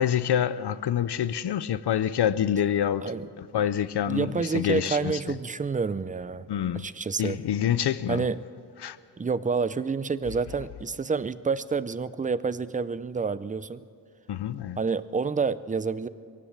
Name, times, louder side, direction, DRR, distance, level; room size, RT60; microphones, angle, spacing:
voice 1, 0.0-3.1 3.4-5.2 6.5-6.9 7.2-8.2 8.8-9.0 14.3-14.8, left 10 dB, 65° left, 0.6 m, -26 dB
voice 2, 4.1-6.5 6.7-7.4 8.1-8.4 9.2-13.8 14.8-16.1, right 5 dB, 20° right, 0.5 m, -28 dB
23.0 x 16.5 x 7.5 m
wide cardioid pair, 135°, 44 cm